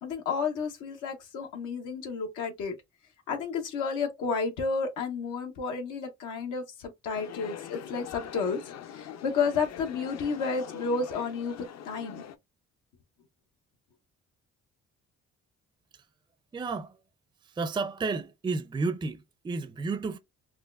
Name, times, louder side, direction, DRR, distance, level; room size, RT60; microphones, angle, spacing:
voice 1, 0.0-2.7 3.3-8.6 8.9-12.2, left 5 dB, 90° left, 0.9 m, -31 dB
sound 1, 7.1-12.4, left 9 dB, 60° left, 0.6 m, -43 dB
voice 2, 16.5-17.0 17.6-20.2, right 4 dB, 15° right, 0.4 m, -31 dB
4.1 x 2.3 x 2.4 m
cardioid pair, 90°, 30 cm